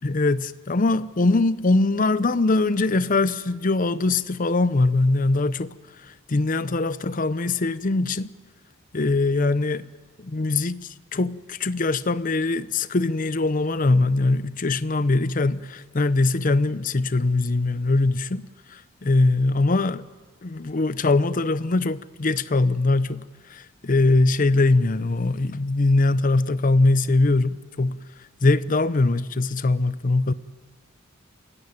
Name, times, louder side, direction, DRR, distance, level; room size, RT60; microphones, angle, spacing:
voice 1, 0.0-5.7 6.3-8.3 8.9-9.8 10.2-20.0 20.4-28.0 28.4-30.3, left 2 dB, 40° left, 0.7 m, -22 dB
28.0 x 16.0 x 9.1 m
head